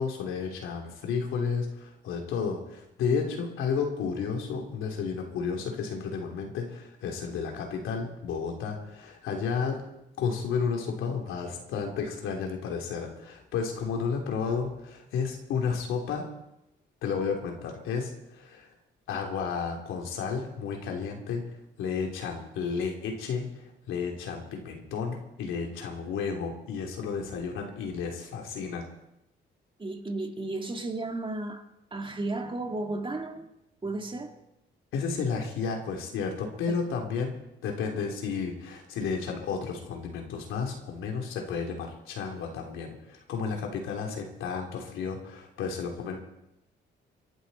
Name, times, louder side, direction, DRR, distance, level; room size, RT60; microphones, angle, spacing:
voice 1, 0.0-9.8 10.2-16.3 17.0-18.7 19.1-21.4 21.8-28.8 34.9-37.4 37.6-46.2, left 5 dB, 90° left, 3.3 m, -32 dB
voice 2, 29.8-33.5 33.8-34.4 36.7-36.8, right 2 dB, 25° right, 2.0 m, -34 dB
25.0 x 11.5 x 4.3 m
cardioid pair, 90°, 20 cm